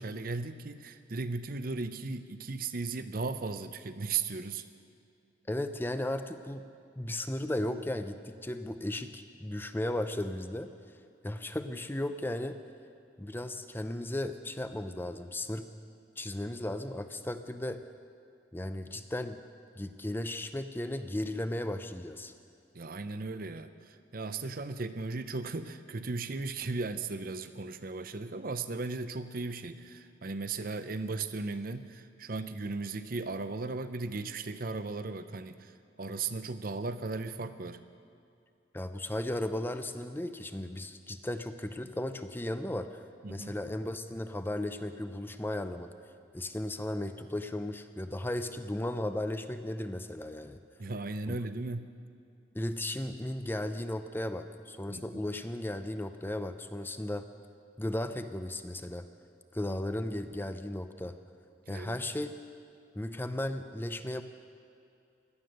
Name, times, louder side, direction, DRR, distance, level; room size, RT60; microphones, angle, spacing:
voice 1, 0.0-4.6 22.7-37.8 43.2-43.5 50.8-52.0 54.9-55.2 61.7-62.0, right 3 dB, 50° right, 11 dB, 0.7 m, -36 dB
voice 2, 5.5-6.7 7.0-10.7 11.2-12.6 13.2-15.7 16.2-17.8 18.5-19.4 19.8-22.3 38.7-43.0 43.3-45.9 46.3-50.6 51.3-51.4 52.5-57.3 57.8-59.1 59.5-61.2 61.7-62.3 63.0-64.2, left 1 dB, 10° left, 9 dB, 0.6 m, -35 dB
17.0 x 12.0 x 6.6 m, 2.6 s
head